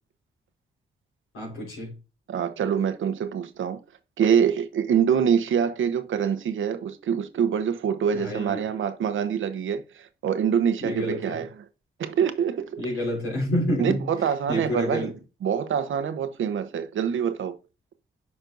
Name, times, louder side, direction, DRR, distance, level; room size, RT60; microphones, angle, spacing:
voice 1, 1.3-2.0 8.1-8.7 10.8-11.4 12.8-15.1, left 1 dB, 80° left, 4.4 m, -29 dB
voice 2, 2.3-3.8 4.2-11.4 12.0-12.8 13.8-15.1 15.4-17.6, right 8 dB, 70° right, 1.0 m, -25 dB
9.5 x 5.4 x 2.6 m
supercardioid pair, 45°, 21 cm